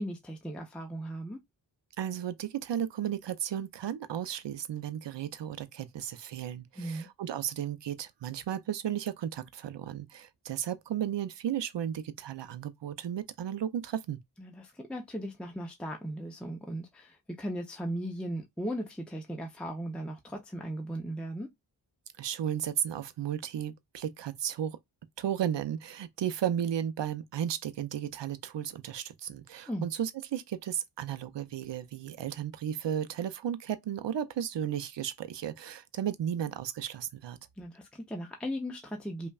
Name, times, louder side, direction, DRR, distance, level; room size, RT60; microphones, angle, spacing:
voice 1, 0.0-1.4 6.8-7.1 14.4-21.5 29.7-29.9 37.6-39.3, equal, ahead, 0.6 m, -37 dB
voice 2, 2.0-14.2 22.2-24.8 25.2-37.4, right 10 dB, 75° right, 0.6 m, -34 dB
5.3 x 2.3 x 2.3 m
wide cardioid pair, 110°, 43 cm